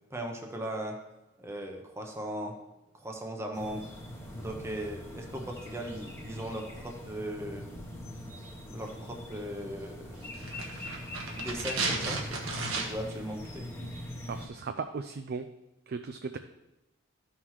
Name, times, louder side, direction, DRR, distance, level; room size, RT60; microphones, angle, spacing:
voice 1, 0.1-1.0 1.4-2.6 2.9-3.9 4.4-7.7 8.7-10.3 11.4-13.7, right 1 dB, 15° right, 1 dB, 0.8 m, -38 dB
sound 1, 3.5-14.5, left 1 dB, 10° left, 1.0 m, -43 dB
sound 2, 10.3-13.2 13.4-13.5, right 3 dB, 75° right, 1.3 m, -34 dB
voice 2, 14.3-15.5 15.9-16.4, right 5 dB, 50° right, 8 dB, 0.4 m, -36 dB
13.0 x 5.6 x 3.1 m, 0.96 s
head